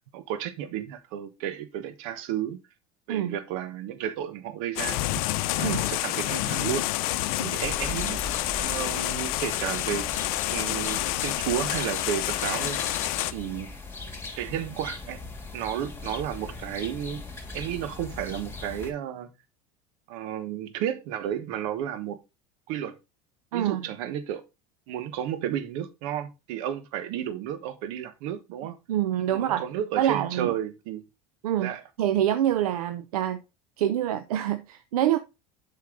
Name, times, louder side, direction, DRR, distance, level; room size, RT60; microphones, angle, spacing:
voice 1, 0.1-2.6 3.1-5.0 5.6-6.9 7.5-8.2 8.6-10.1 10.5-12.8 13.3-13.7 14.4-15.2 15.5-17.2 17.5-19.3 20.1-22.2 22.7-23.0 23.5-24.4 24.9-28.8 29.3-31.0 31.6-31.8, right 10 dB, 70° right, 1.2 m, -32 dB
sound 1, 4.8-13.3, left 16 dB, 75° left, 0.6 m, -28 dB
sound 2, 7.6-18.9, left 3 dB, 15° left, 2.8 m, -39 dB
voice 2, 23.5-23.9 28.9-29.6 30.0-30.5 31.4-31.7 32.0-33.4 33.8-35.2, right 11 dB, 85° right, 0.7 m, -26 dB
7.5 x 5.6 x 3.8 m
hypercardioid pair, 90°, 19 cm